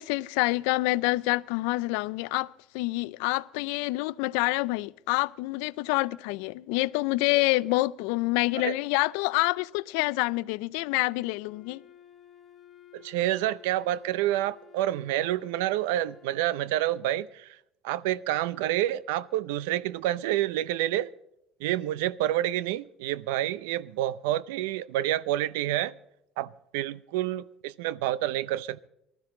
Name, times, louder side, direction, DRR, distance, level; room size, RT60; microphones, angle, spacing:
voice 1, 0.0-2.5 2.7-11.8, left 21 dB, 80° left, 0.4 m, -27 dB
Wind instrument woodwind instrument, 11.4-16.6, left 9 dB, 40° left, 2.1 m, -54 dB
voice 2, 12.9-17.5 17.8-21.1 21.6-25.9 26.4-28.9, right 14 dB, 85° right, 0.5 m, -28 dB
19.0 x 13.0 x 3.8 m
supercardioid pair, 80°, 0 cm